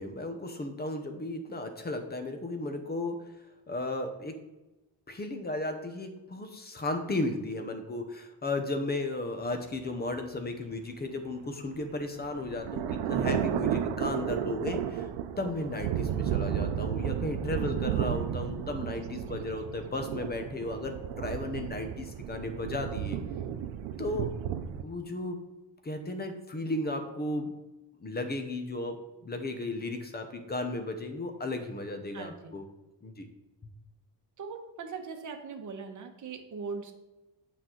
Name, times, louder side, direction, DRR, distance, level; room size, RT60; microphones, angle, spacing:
voice 1, 0.0-3.3 3.7-4.4 5.1-15.1 15.4-23.2 24.0-24.3 24.8-25.4 25.8-27.5 28.0-29.0 29.2-32.7 33.0-33.3, left 2 dB, 20° left, 6 dB, 0.9 m, -35 dB
sound 1, 11.7-24.8, right 9 dB, 80° right, 0.7 m, -33 dB
voice 2, 32.1-32.5 34.4-36.9, right 5 dB, 40° right, 4 dB, 1.1 m, -40 dB
8.7 x 6.2 x 3.9 m, 1.0 s
cardioid pair, 155°, 44 cm